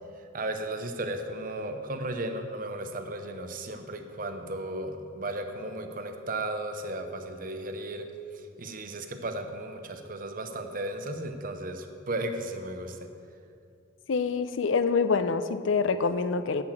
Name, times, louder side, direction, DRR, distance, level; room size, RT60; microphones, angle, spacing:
voice 1, 0.3-8.1 8.3-13.0, right 1 dB, 45° right, 6 dB, 0.8 m, -35 dB
voice 2, 14.1-16.6, left 5 dB, 85° left, 12 dB, 0.5 m, -26 dB
11.0 x 5.9 x 7.5 m, 2.5 s
head